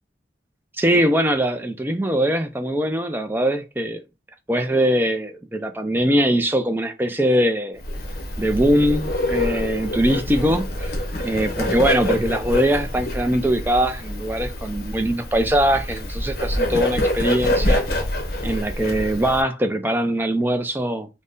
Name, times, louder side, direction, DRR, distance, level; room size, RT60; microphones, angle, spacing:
voice 1, 0.8-4.0 4.5-7.8 8.4-10.9 11.2-17.8 18.4-21.1, right 1 dB, 10° right, 0.4 m, -21 dB
Bird, 7.8-19.4, left 1 dB, 55° left, 0.6 m, -26 dB
2.6 x 2.1 x 3.6 m
head